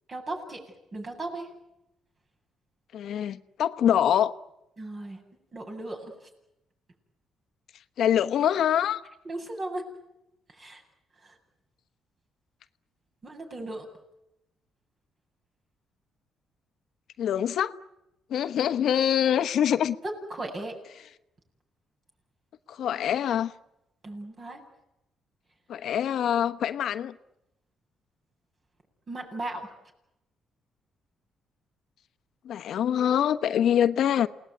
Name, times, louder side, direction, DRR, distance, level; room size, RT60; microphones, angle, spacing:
voice 1, 0.1-0.6 0.9-1.5 4.8-5.2 5.5-6.1 9.2-9.8 10.6-10.8 11.2-11.3 13.2-13.9 20.3-20.7 24.0-24.6 29.1-29.7, right 2 dB, 40° right, 8.0 m, -36 dB
voice 2, 2.9-4.3 8.0-9.0 17.2-17.7 18.3-20.0 22.7-23.5 25.7-27.2 32.4-34.3, left 9 dB, 70° left, 1.1 m, -24 dB
28.5 x 19.0 x 9.5 m
cardioid pair, 90°, 0 cm